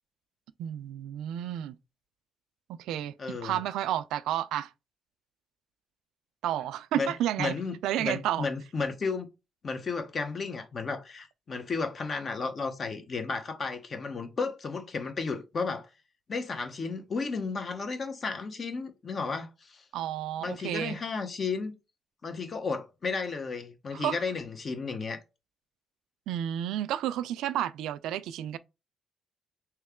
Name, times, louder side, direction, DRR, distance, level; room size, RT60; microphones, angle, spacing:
voice 1, 0.6-1.8 2.7-4.7 6.4-8.5 19.9-21.0 23.9-24.2 26.3-28.6, right 11 dB, 90° right, 0.3 m, -31 dB
voice 2, 3.2-3.6 6.9-7.1 7.4-9.3 9.6-15.9 16.3-19.8 20.4-21.7 22.2-25.2, left 4 dB, 45° left, 0.9 m, -33 dB
3.1 x 2.9 x 3.6 m
cardioid pair, 90°, 0 cm